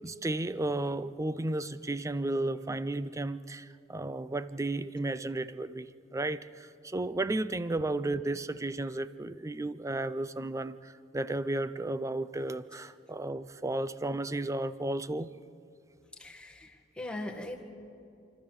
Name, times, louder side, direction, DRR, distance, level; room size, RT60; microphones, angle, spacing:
voice 1, 0.0-15.3, right 2 dB, 15° right, 14 dB, 0.5 m, -33 dB
voice 2, 16.2-17.6, left 1 dB, 5° left, 0 dB, 1.8 m, -40 dB
29.0 x 12.5 x 7.4 m, 2.5 s
head